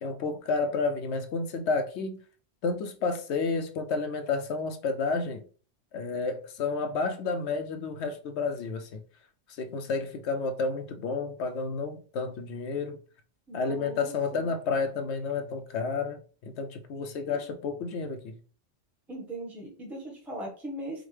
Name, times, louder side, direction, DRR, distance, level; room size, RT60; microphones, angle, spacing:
voice 1, 0.0-2.2 2.6-5.4 5.9-9.0 9.6-13.0 13.5-18.4, left 4 dB, 70° left, 0.8 m, -31 dB
voice 2, 13.5-14.5 17.3-17.4 19.1-21.0, right 1 dB, ahead, 0.9 m, -39 dB
4.9 x 2.2 x 3.2 m
omnidirectional pair, 1.3 m